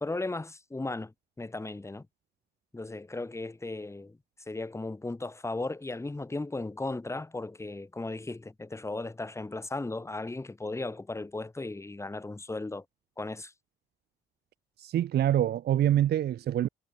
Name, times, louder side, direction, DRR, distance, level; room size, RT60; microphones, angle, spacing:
voice 1, 0.0-2.1 2.7-4.2 4.5-12.8 13.2-13.5, left 2 dB, 15° left, 1.7 m, -36 dB
voice 2, 14.8-16.7, right 11 dB, 55° right, 0.5 m, -25 dB
cardioid pair, 90°, 20 cm